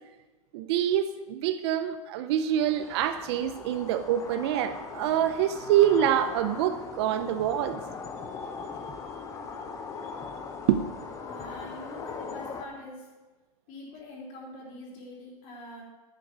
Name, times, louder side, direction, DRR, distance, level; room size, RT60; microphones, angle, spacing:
voice 1, 0.5-7.8 10.7-10.9, right 10 dB, 45° right, 10 dB, 0.6 m, -26 dB
sound 1, 2.5-12.7, left 5 dB, 15° left, 0.7 m, -40 dB
voice 2, 11.3-13.1 13.7-15.8, left 1 dB, 40° left, -3 dB, 3.7 m, -44 dB
11.0 x 7.7 x 5.2 m, 1.2 s
hypercardioid pair, 150°, 20 cm